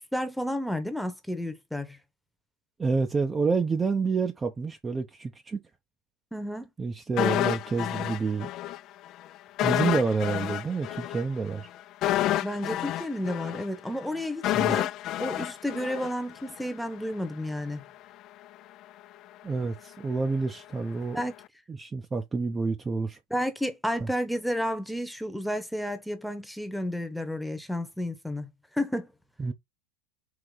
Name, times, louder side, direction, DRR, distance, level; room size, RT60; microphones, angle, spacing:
voice 1, 0.1-2.0 6.3-6.7 12.4-14.9 15.2-17.8 21.1-21.3 23.3-28.5 28.7-29.1, equal, ahead, 1.0 m, -31 dB
voice 2, 2.8-5.6 6.8-8.5 9.6-11.7 14.5-14.8 19.4-21.2 21.7-23.2 24.0-24.1 29.4-29.5, right 4 dB, 15° right, 0.6 m, -28 dB
sound 1, 7.2-8.8 9.1-9.2 9.6-16.7 17.0-17.1, left 14 dB, 45° left, 0.3 m, -29 dB
4.7 x 2.9 x 3.9 m
supercardioid pair, 125°, 0 cm